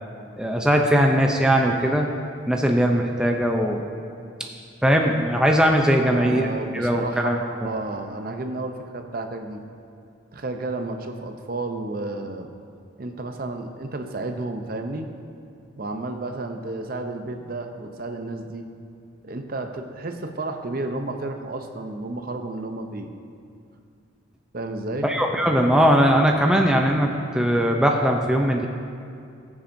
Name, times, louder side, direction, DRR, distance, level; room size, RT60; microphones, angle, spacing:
voice 1, 0.4-2.1 2.5-3.8 4.8-6.5 6.7-7.4 25.0-27.1 27.3-28.7, equal, 5° right, 1 dB, 0.5 m, -20 dB
voice 2, 6.0-9.6 10.3-12.5 13.0-15.1 15.8-18.6 19.2-23.1 24.5-25.1, right 2 dB, 45° right, 5 dB, 0.6 m, -32 dB
20.0 x 7.2 x 2.7 m, 2.5 s
head